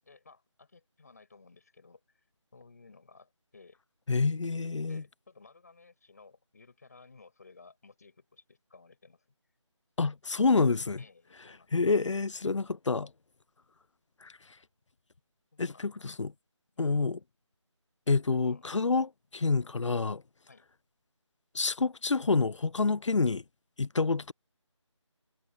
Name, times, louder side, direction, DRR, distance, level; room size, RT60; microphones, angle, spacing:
voice 1, 0.0-2.3 2.5-3.8 4.9-9.3 11.0-11.7 15.5-15.9 16.7-17.1 18.4-19.1 20.5-20.6, left 4 dB, 30° left, 6.7 m, -57 dB
voice 2, 4.1-5.0 10.0-11.0 11.7-13.1 14.2-14.3 15.6-16.3 16.8-17.2 18.1-19.1 19.4-20.2 21.5-23.4 23.8-24.3, left 4 dB, 70° left, 0.6 m, -27 dB
figure-of-eight pair, 175°, 16 cm